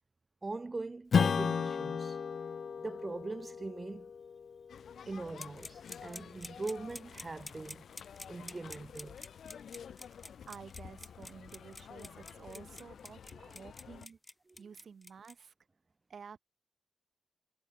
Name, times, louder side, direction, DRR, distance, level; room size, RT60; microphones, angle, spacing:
voice 1, 0.4-2.2 2.8-4.1 5.1-7.8 8.3-9.2 13.3-13.4 14.5-14.6, right 3 dB, 25° right, 0.6 m, -41 dB
Strum, 1.1-6.0, left 6 dB, 55° left, 0.8 m, -34 dB
sound 1, 4.7-14.1, left 8 dB, 75° left, 1.1 m, -51 dB
sound 2, 5.4-15.3, left 2 dB, 15° left, 1.5 m, -48 dB
voice 2, 10.5-14.2 14.6-15.5 16.1-16.4, right 6 dB, 55° right, 2.8 m, -51 dB
wide cardioid pair, 140°, 0 cm